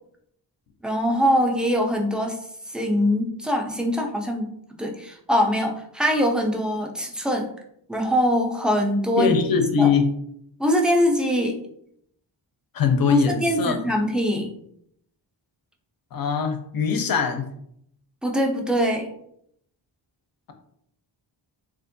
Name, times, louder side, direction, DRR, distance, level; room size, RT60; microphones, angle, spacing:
voice 1, 0.8-2.4 2.7-4.5 4.8-7.5 7.9-9.3 9.8-9.9 10.6-11.6 13.1-14.5 18.2-19.1, equal, ahead, 1 dB, 0.4 m, -22 dB
voice 2, 9.2-10.1 12.7-13.8 16.1-17.5, left 5 dB, 50° left, 7 dB, 0.5 m, -22 dB
3.4 x 2.5 x 2.6 m, 0.70 s
wide cardioid pair, 100°, 47 cm